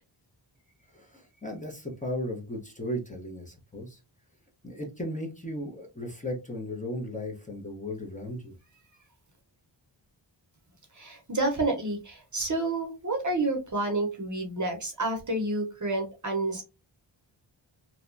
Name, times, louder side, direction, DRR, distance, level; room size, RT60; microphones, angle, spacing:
voice 1, 0.9-4.0 4.6-8.6, left 1 dB, 15° left, 0 dB, 0.7 m, -36 dB
voice 2, 10.9-16.6, right 2 dB, 40° right, 3 dB, 0.8 m, -29 dB
2.8 x 2.2 x 2.5 m, 0.28 s
wide cardioid pair, 65°, 48 cm